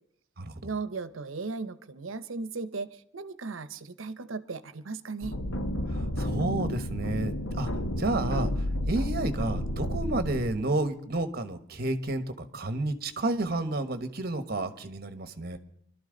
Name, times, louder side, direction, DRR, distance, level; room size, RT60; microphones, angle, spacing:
voice 1, 0.6-5.4, right 4 dB, 80° right, 14 dB, 0.8 m, -36 dB
sound 1, 5.2-10.4, left 1 dB, 80° left, 1.3 m, -31 dB
voice 2, 5.9-7.7 8.0-15.6, right 2 dB, 50° right, 9 dB, 1.2 m, -31 dB
24.0 x 12.5 x 3.9 m, 0.67 s
head